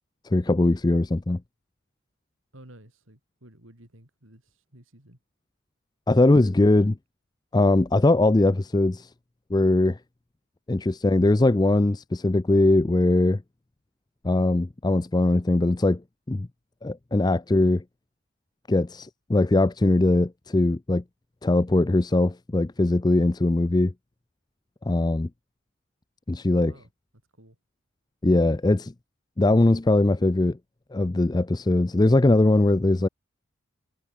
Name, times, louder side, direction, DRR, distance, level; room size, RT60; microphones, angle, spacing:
voice 1, 0.2-1.4 6.1-6.9 7.5-9.1 9.5-10.0 10.7-13.4 14.2-16.0 16.3-16.5 16.8-17.8 18.7-21.0 21.4-23.9 24.8-25.3 26.3-26.7 28.2-28.8 29.4-30.6 30.9-33.1, left 2 dB, 20° left, 0.4 m, -21 dB
voice 2, 2.5-5.2 6.9-7.0 26.5-26.9 27.3-27.6, right 1 dB, 70° right, 5.2 m, -52 dB
head